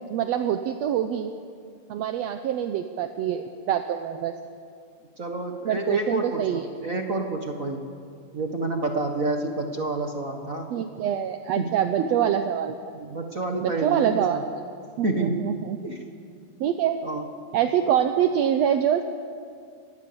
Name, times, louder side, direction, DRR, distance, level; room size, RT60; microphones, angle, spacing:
voice 1, 0.1-1.3 1.9-4.3 5.6-6.6 10.7-12.8 13.6-14.4 15.0-15.8 16.6-17.0 17.5-19.0, right 9 dB, 75° right, 7 dB, 1.6 m, -25 dB
voice 2, 5.2-7.8 8.3-10.7 11.6-12.1 12.9-14.4 15.0-15.5 15.8-16.0 17.0-17.2, right 2 dB, 45° right, 3 dB, 1.1 m, -29 dB
26.0 x 19.5 x 7.0 m, 2.2 s
omnidirectional pair, 3.9 m